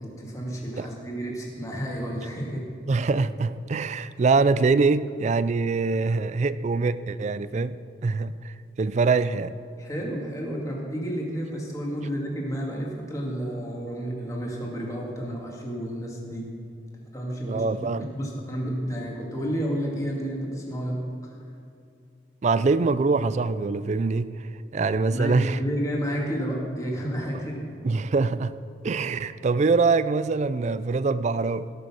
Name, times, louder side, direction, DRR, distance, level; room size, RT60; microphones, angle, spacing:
voice 1, 0.0-2.6 9.8-16.5 17.1-21.0 25.1-27.6, equal, 20° left, 2.3 m, -31 dB
voice 2, 2.9-9.6 17.4-18.1 22.4-24.5 24.7-25.6 27.8-31.7, right 4 dB, 40° right, 0.3 m, -24 dB
17.0 x 6.8 x 6.2 m
head